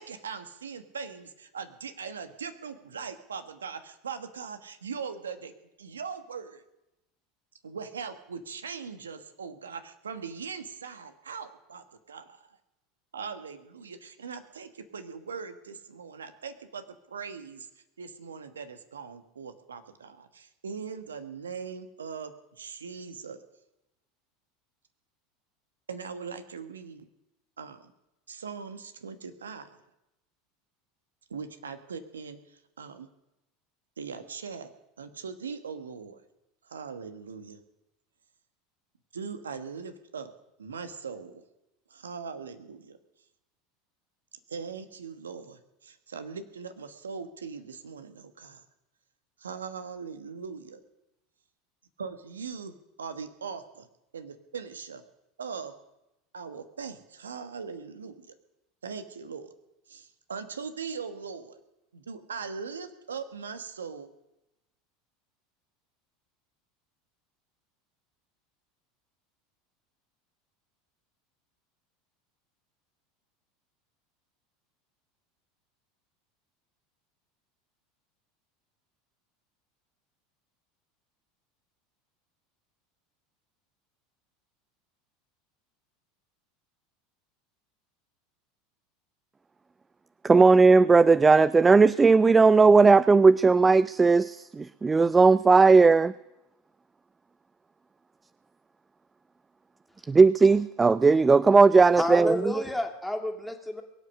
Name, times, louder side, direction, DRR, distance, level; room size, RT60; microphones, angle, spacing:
voice 1, 0.0-5.5 5.8-6.6 7.6-12.6 13.1-17.7 18.0-23.4 25.9-27.1 27.6-27.9 28.3-29.8 31.3-33.1 34.0-34.7 35.0-36.2 36.7-37.6 39.1-40.3 40.6-41.4 41.9-43.0 44.5-48.6 49.4-50.8 52.0-53.9 54.1-55.0 55.4-55.7 56.3-58.3 58.8-59.5 59.9-61.6 61.9-64.1, right 5 dB, 85° right, 1.4 m, -40 dB
voice 2, 90.2-96.1 100.1-102.5, right 4 dB, 20° right, 0.4 m, -18 dB
voice 3, 101.9-103.8, left 1 dB, 5° left, 2.6 m, -30 dB
22.5 x 8.2 x 6.5 m
hypercardioid pair, 80°, 0 cm